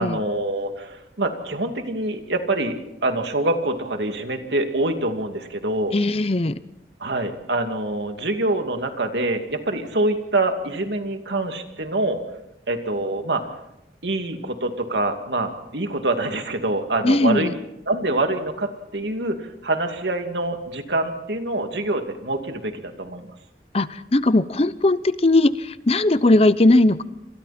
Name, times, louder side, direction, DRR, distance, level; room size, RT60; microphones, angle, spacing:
voice 1, 0.0-2.8 3.0-6.0 7.0-12.2 12.7-13.4 14.0-17.5 17.9-23.3, right 2 dB, 80° right, 5 dB, 2.6 m, -25 dB
voice 2, 5.9-6.6 17.0-17.5 23.7-27.0, left 2 dB, 35° left, 15 dB, 0.7 m, -18 dB
28.5 x 26.0 x 4.4 m, 0.86 s
head